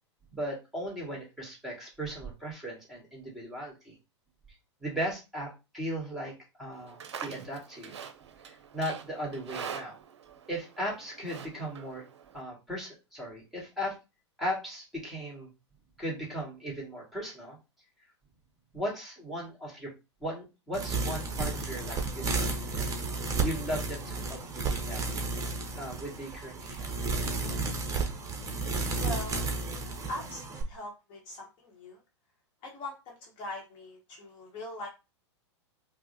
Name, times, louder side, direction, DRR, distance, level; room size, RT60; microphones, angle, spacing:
voice 1, 0.3-3.9 4.8-8.0 8.5-10.0 10.5-12.0 12.3-14.0 14.4-15.5 16.0-17.6 18.7-19.9 20.2-22.9 23.3-25.3 25.7-26.9, equal, ahead, -2 dB, 1.7 m, -37 dB
Livestock farm animals working animals, 6.7-12.4, right 7 dB, 65° right, 0.6 m, -44 dB
sound 1, 20.7-30.6, right 3 dB, 20° right, 0.8 m, -32 dB
voice 2, 28.9-29.8 30.1-32.0 32.6-34.9, left 1 dB, 35° left, -1 dB, 1.0 m, -42 dB
4.6 x 2.1 x 2.6 m, 0.26 s
figure-of-eight pair, 100°, 15 cm